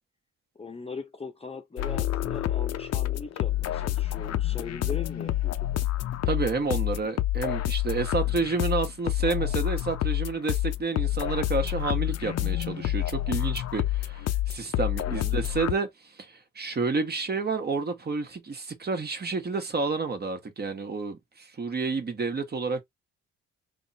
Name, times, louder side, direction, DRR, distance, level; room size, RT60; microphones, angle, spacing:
voice 1, 0.6-5.5 15.1-15.4, left 4 dB, 20° left, 0.7 m, -40 dB
sound 1, 1.8-15.7, left 13 dB, 55° left, 0.6 m, -28 dB
voice 2, 6.3-15.9 16.2-22.8, right 4 dB, 35° right, 1.1 m, -30 dB
3.6 x 2.1 x 4.1 m
cardioid pair, 90°, 30 cm